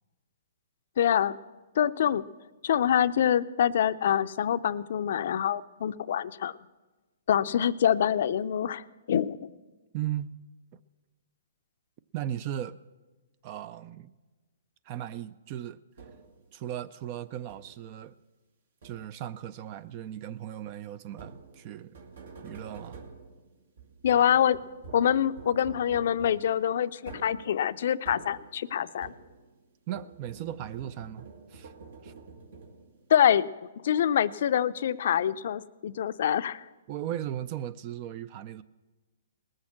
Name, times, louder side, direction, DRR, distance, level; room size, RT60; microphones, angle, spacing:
voice 1, 1.0-1.4 1.8-2.2 2.6-6.6 7.3-9.5 24.0-24.6 24.9-29.1 33.1-33.5 33.8-36.6, left 9 dB, 60° left, 13 dB, 0.5 m, -25 dB
voice 2, 9.9-10.4 10.7-10.8 12.1-12.8 13.4-14.1 14.8-15.8 16.5-18.1 18.8-22.0 22.4-23.0 29.9-31.7 32.0-32.1 36.9-38.6, right 11 dB, 35° right, 17 dB, 0.4 m, -37 dB
sound 1, 16.0-16.5 17.5-18.0 18.8-19.4 21.1-29.6 29.9-33.1, right 4 dB, 65° right, 1.9 m, -48 dB
19.0 x 6.4 x 7.3 m, 1.2 s
hypercardioid pair, 150°, 0 cm